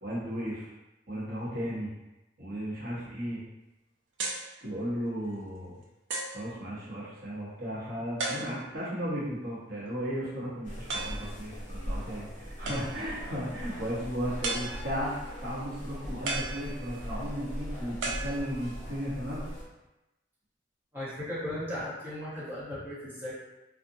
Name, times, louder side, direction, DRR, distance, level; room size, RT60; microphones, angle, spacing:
voice 1, 0.0-0.7 1.1-1.9 2.4-3.4 4.6-5.8 6.3-15.1 15.4-19.4, equal, 55° right, -8 dB, 0.8 m, -35 dB
sound 1, 4.2-4.5 5.3-5.4 6.1-6.5 8.2-8.8 10.9-11.3 12.7-13.2 14.4-15.1 16.3-17.1 18.0-18.9, right 3 dB, 75° right, 0.4 m, -35 dB
sound 2, 10.6-19.6, equal, 45° left, 0.7 m, -39 dB
voice 2, 20.9-23.3, left 1 dB, 10° right, -11 dB, 0.9 m, -36 dB
2.6 x 2.0 x 2.6 m, 0.98 s
head